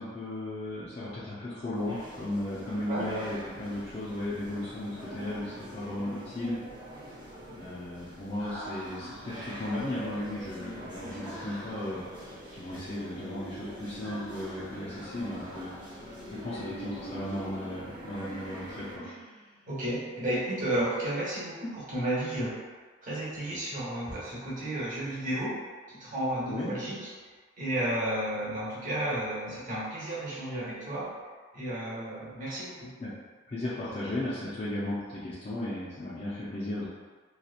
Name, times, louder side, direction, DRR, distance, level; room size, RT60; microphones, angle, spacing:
voice 1, 0.0-6.6 7.5-12.0 12.5-15.8 16.3-19.1 26.5-26.7 33.0-33.1 33.5-36.9, left 1 dB, 35° left, -10 dB, 0.5 m, -35 dB
sound 1, 1.7-19.0, equal, 25° right, 0.6 m, -44 dB
Human voice, 5.0-5.9 8.4-9.7 11.2-12.0 14.0-15.8 18.0-19.7, equal, ahead, 0.8 m, -46 dB
sound 2, 11.8-17.8, left 1 dB, 75° left, 0.6 m, -50 dB
voice 2, 19.7-22.6 23.0-25.5 25.9-27.0 27.6-31.1 31.5-32.9, right 1 dB, 45° right, -8 dB, 1.0 m, -32 dB
2.8 x 2.3 x 2.4 m, 1.4 s
head